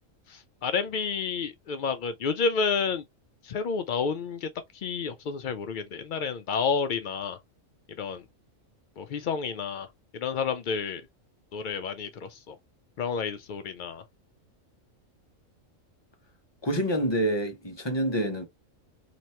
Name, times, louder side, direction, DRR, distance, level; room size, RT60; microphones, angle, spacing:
voice 1, 0.3-3.0 3.4-7.4 8.0-8.2 9.0-9.9 10.1-11.0 11.5-12.6 13.0-14.0, left 5 dB, 80° left, 0.4 m, -30 dB
voice 2, 16.6-18.5, right 1 dB, 20° left, 0.9 m, -27 dB
2.9 x 2.9 x 4.3 m
omnidirectional pair, 1.4 m